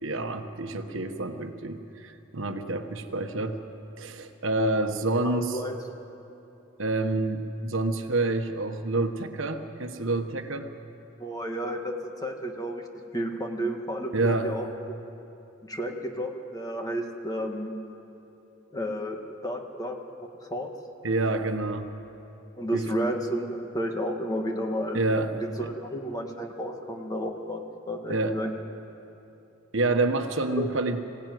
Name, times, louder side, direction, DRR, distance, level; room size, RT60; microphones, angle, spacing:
voice 1, 0.0-3.6 3.9-5.6 6.8-10.7 14.1-14.5 21.0-21.9 22.7-22.8 24.9-25.7 28.1-28.4 29.7-31.0, right 2 dB, 70° right, 6 dB, 1.3 m, -28 dB
voice 2, 5.2-5.8 11.2-11.9 12.2-12.8 13.1-15.0 15.6-17.7 18.7-20.7 22.6-25.0 25.4-27.6 27.9-28.5 30.6-30.7, equal, 20° left, 2 dB, 1.9 m, -32 dB
25.0 x 17.0 x 9.4 m, 2.9 s
head